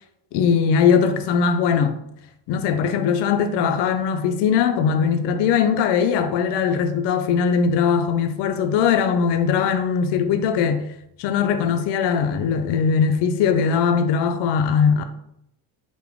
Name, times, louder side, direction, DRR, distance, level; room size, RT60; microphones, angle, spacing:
voice 1, 0.3-2.0 2.5-10.8 11.2-15.0, left 6 dB, 70° left, 0.6 m, -20 dB
3.7 x 2.2 x 3.4 m
cardioid pair, 100°, 43 cm